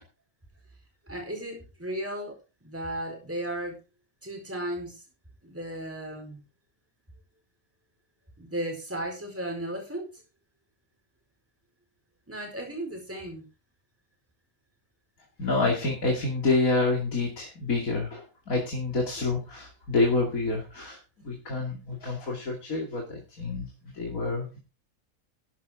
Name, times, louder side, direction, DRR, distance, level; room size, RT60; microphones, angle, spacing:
voice 1, 1.1-3.8 4.2-5.0 5.4-6.4 8.4-10.1 12.3-13.4, right 1 dB, 10° right, 1 dB, 4.5 m, -35 dB
voice 2, 15.4-21.0 21.2-24.6, left 3 dB, 70° left, -1 dB, 2.9 m, -28 dB
13.0 x 10.5 x 3.8 m, 0.31 s
omnidirectional pair, 1.5 m